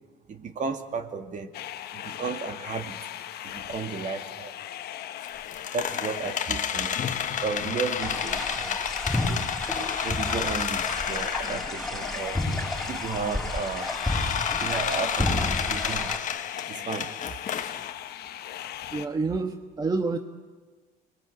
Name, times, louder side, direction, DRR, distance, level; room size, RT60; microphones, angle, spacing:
voice 1, 0.3-1.5 1.9-3.0 3.4-4.5 5.7-7.0 7.4-8.8 10.0-12.4 12.9-13.9 14.6-16.2 16.7-17.1, right 5 dB, 45° right, 6 dB, 2.6 m, -33 dB
sound 1, 1.5-19.1, left 12 dB, 60° left, 1.3 m, -38 dB
sound 2, 5.2-11.9 12.3-12.4 13.2-17.9, left 8 dB, 45° left, 1.4 m, -31 dB
sound 3, 8.0-16.2, left 1 dB, 5° left, 5.4 m, -31 dB
voice 2, 18.9-20.2, right 3 dB, 20° right, 6 dB, 1.4 m, -28 dB
29.0 x 22.0 x 8.3 m, 1.4 s
supercardioid pair, 95°, 18 cm